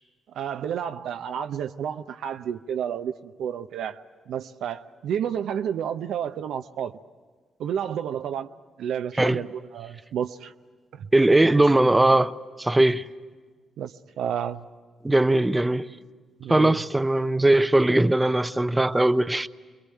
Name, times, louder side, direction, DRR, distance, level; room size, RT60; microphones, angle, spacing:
voice 1, 0.3-4.0 4.3-7.0 7.6-8.5 8.8-10.5 10.9-11.1 13.8-14.7 16.4-16.8, right 9 dB, 70° right, 0.7 m, -31 dB
voice 2, 11.1-13.1 15.0-15.9 16.5-19.5, right 1 dB, 15° right, 0.8 m, -20 dB
27.0 x 22.0 x 9.9 m
hypercardioid pair, 45°, 0 cm